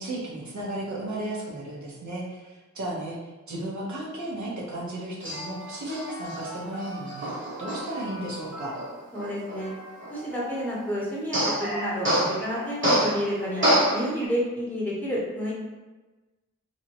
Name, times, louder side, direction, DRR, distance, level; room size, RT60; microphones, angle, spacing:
voice 1, 0.0-3.2 3.5-7.3 7.6-8.7, right 1 dB, 65° right, -4 dB, 0.9 m, -34 dB
Male speech man speaking, 5.2-10.8 11.3-14.2, equal, 40° right, 1.0 m, -28 dB
voice 2, 9.1-9.7 10.1-13.6 13.9-15.5, equal, 5° left, -6 dB, 1.0 m, -30 dB
2.7 x 2.1 x 2.8 m, 1.2 s
cardioid pair, 50°, 31 cm